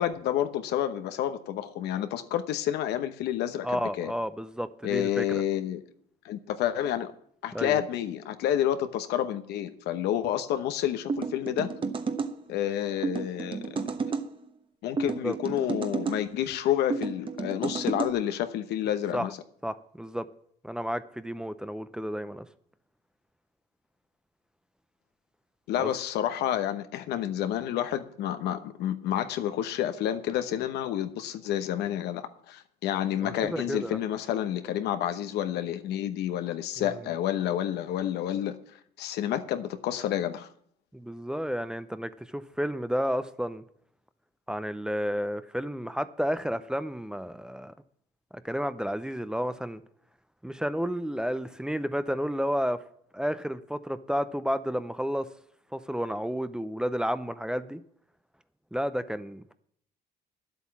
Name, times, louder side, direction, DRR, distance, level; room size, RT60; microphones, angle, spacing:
voice 1, 0.0-4.1 4.8-5.8 6.2-7.1 7.4-11.7 12.5-13.8 14.8-19.4 25.7-38.6 39.0-40.5, left 11 dB, 80° left, 1.0 m, -29 dB
voice 2, 3.6-5.4 7.5-7.8 15.2-15.4 19.1-19.3 19.6-20.3 20.6-22.5 25.8-25.9 33.2-34.0 36.8-37.0 40.9-43.6 44.5-47.7 48.4-49.8 50.4-52.8 53.1-55.3 55.7-57.8 58.7-59.5, equal, 5° right, 0.6 m, -31 dB
sound 1, 11.1-12.3 13.0-14.3 15.0-16.2 16.9-18.1, right 5 dB, 30° right, 1.0 m, -31 dB
10.0 x 8.2 x 7.3 m
cardioid pair, 110°, 17 cm